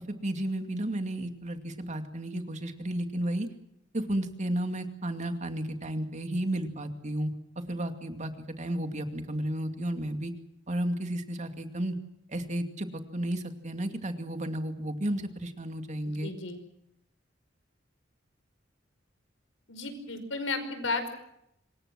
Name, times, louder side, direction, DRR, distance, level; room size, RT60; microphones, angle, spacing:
voice 1, 0.2-3.5 3.9-7.3 7.7-8.3 8.6-10.3 10.7-12.0 12.3-16.3, right 1 dB, 40° right, 7 dB, 2.5 m, -32 dB
voice 2, 16.2-16.6 19.7-21.1, left 3 dB, 85° left, 9 dB, 5.3 m, -33 dB
27.0 x 22.5 x 6.2 m, 0.78 s
head